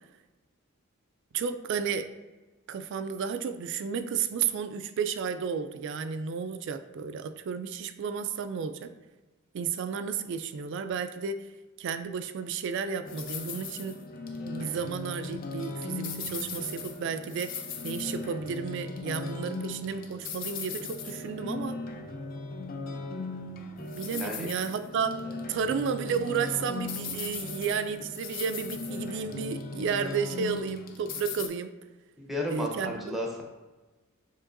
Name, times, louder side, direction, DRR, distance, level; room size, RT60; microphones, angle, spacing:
voice 1, 1.3-2.1 2.7-8.9 9.5-11.4 11.8-14.0 14.5-17.5 17.8-21.8 23.8-25.2 25.5-31.7 32.5-33.1, right 6 dB, 60° right, 10 dB, 0.3 m, -32 dB
sound 1, 13.0-31.5, left 3 dB, 40° left, 0.5 m, -38 dB
voice 2, 24.1-24.5 32.2-33.4, left 1 dB, ahead, 0 dB, 0.6 m, -33 dB
7.2 x 2.9 x 2.5 m, 1.2 s
head